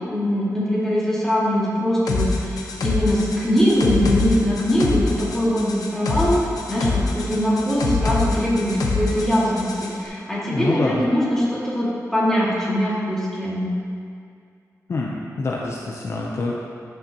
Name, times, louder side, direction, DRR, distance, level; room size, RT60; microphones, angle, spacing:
voice 1, 0.0-13.7, equal, 5° left, -8 dB, 2.2 m, -22 dB
sound 1, 2.1-9.9, left 3 dB, 85° left, 0.9 m, -25 dB
voice 2, 10.5-11.0 14.9-16.5, left 3 dB, 50° left, -2 dB, 0.7 m, -26 dB
12.0 x 6.5 x 3.0 m, 2.3 s
wide cardioid pair, 125°, 6 cm